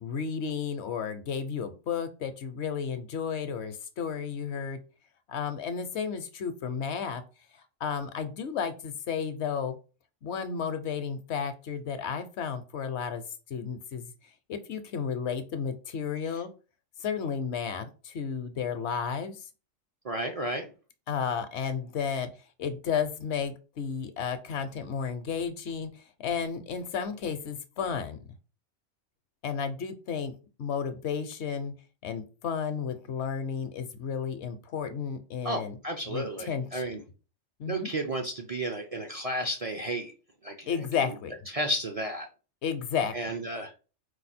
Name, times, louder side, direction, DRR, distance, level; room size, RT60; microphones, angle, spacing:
voice 1, 0.0-4.8 5.3-7.2 7.8-9.8 10.2-13.2 13.5-14.1 14.5-16.5 17.0-19.5 21.1-22.3 22.6-28.2 29.4-30.3 30.6-31.7 32.0-35.8 36.1-36.9 37.6-37.9 40.7-41.3 42.6-43.4, left 6 dB, 70° left, 10 dB, 0.9 m, -32 dB
voice 2, 20.0-20.7 35.4-37.0 37.7-40.1 40.4-41.1 41.5-42.3 43.1-43.7, right 1 dB, 40° right, 3 dB, 0.5 m, -33 dB
4.8 x 2.3 x 4.2 m, 0.33 s
omnidirectional pair, 1.2 m